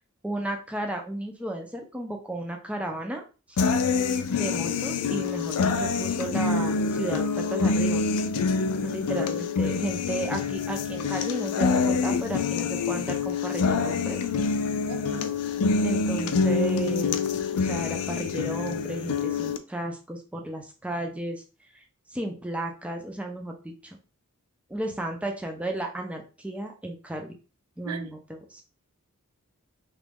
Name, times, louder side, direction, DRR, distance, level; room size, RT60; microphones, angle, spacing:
voice 1, 0.2-3.6 4.3-8.1 8.8-14.2 15.8-17.2 17.5-21.4 21.7-21.8 22.1-24.0 24.7-27.3 27.8-28.6, right 1 dB, 5° right, 0.4 m, -33 dB
sound 1, 3.6-19.6, left 4 dB, 90° left, 0.4 m, -26 dB
voice 2, 14.9-15.3 27.8-28.1, right 5 dB, 85° right, 0.5 m, -37 dB
3.0 x 2.3 x 3.4 m
head